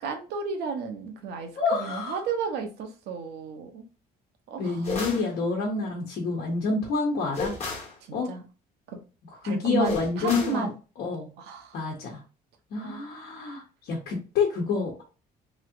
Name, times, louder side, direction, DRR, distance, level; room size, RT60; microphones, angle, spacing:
voice 1, 0.0-3.8 4.5-4.9 8.0-8.4 8.9-9.0 9.4-10.7 11.4-11.8 12.8-13.0, right 5 dB, 80° right, 5 dB, 0.8 m, -33 dB
voice 2, 1.6-2.2 4.6-7.5 8.1-8.3 9.4-10.7 11.0-11.3 11.7-12.2 12.7-15.0, left 4 dB, 70° left, -2 dB, 1.1 m, -28 dB
sound 1, 4.8-5.3 7.3-7.9 9.8-10.6, left 3 dB, 40° left, 1.2 m, -32 dB
3.1 x 2.8 x 2.6 m, 0.33 s
cardioid pair, 110°, 17 cm